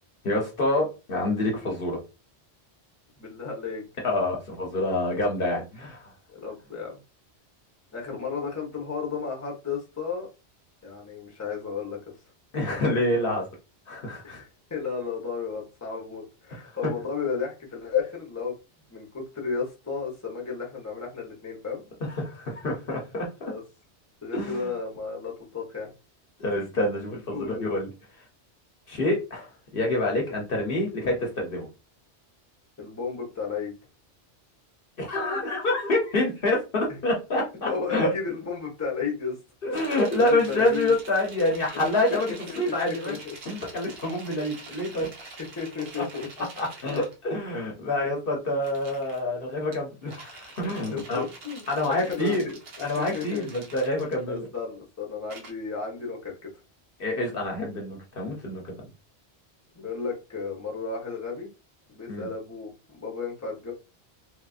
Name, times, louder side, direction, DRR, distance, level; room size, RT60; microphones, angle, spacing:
voice 1, 0.2-2.0 4.0-6.1 12.5-13.4 13.9-14.4 22.2-23.5 24.3-24.7 26.4-27.9 28.9-31.7 35.0-38.1 39.6-42.3 42.6-43.2 43.5-45.1 46.0-46.1 46.4-51.2 51.7-52.5 52.8-54.5 57.0-58.7 62.1-62.3, left 1 dB, 55° left, -1 dB, 0.9 m, -27 dB
voice 2, 3.2-3.8 6.3-7.0 7.9-10.3 10.8-12.0 14.2-18.5 18.9-21.8 23.5-23.6 24.2-25.9 27.3-27.7 32.8-33.7 37.7-39.3 40.2-40.9 42.1-42.2 42.5-43.4 45.0-45.1 45.6-46.5 48.0-48.1 50.9-52.4 52.9-53.5 54.3-56.5 59.7-61.5 61.9-63.7, left 5 dB, 15° left, -2 dB, 0.9 m, -33 dB
sound 1, 39.7-47.1 48.5-49.2 49.7-54.5 55.3-55.5, right 3 dB, 65° right, 1.0 m, -46 dB
3.1 x 2.5 x 2.4 m, 0.29 s
omnidirectional pair, 1.1 m